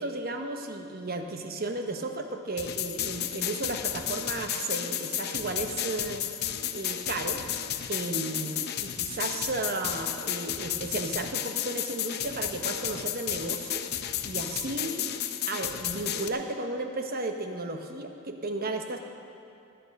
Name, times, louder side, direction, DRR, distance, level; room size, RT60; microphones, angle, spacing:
voice 1, 0.0-6.3 6.7-7.4 7.9-13.8 14.2-15.1 15.5-19.0, right 2 dB, 45° right, 5 dB, 1.0 m, -34 dB
sound 1, 2.6-16.3, left 10 dB, 50° left, 0.6 m, -33 dB
19.0 x 8.8 x 5.3 m, 2.5 s
head